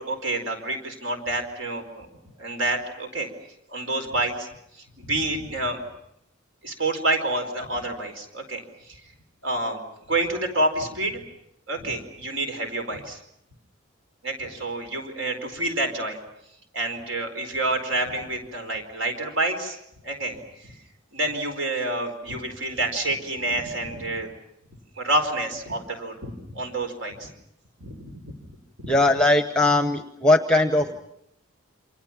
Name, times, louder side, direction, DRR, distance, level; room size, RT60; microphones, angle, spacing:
voice 1, 0.0-2.1 2.4-3.3 3.7-4.5 5.0-5.8 6.6-8.6 9.4-9.8 10.1-11.2 11.7-13.2 14.2-16.2 16.7-19.8 20.0-20.8 21.1-24.3 25.0-27.3 27.8-29.0, right 2 dB, 75° right, 6 dB, 4.6 m, -28 dB
voice 2, 28.9-31.0, left 2 dB, 5° left, 7 dB, 0.9 m, -20 dB
29.0 x 26.0 x 6.0 m, 0.79 s
head